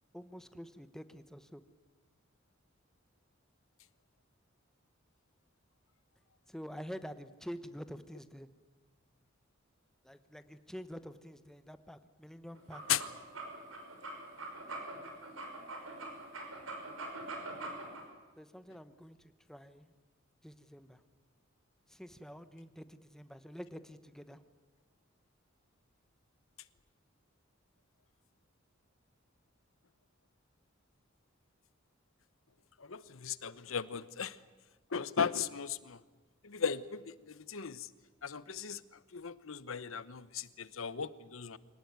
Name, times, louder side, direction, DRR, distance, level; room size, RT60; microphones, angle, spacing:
voice 1, 0.1-1.6 6.5-8.5 10.0-12.8 18.4-19.2 19.5-19.9 20.4-21.0 21.9-24.4, equal, ahead, 11 dB, 1.0 m, -47 dB
sound 1, 12.6-18.0, right 2 dB, 85° right, 5.6 m, -43 dB
voice 2, 32.9-34.3 34.9-36.0 36.4-37.1 37.5-37.9 38.2-38.8 39.1-41.6, left 7 dB, 80° left, 16 dB, 0.9 m, -36 dB
24.5 x 18.5 x 9.5 m, 1.2 s
head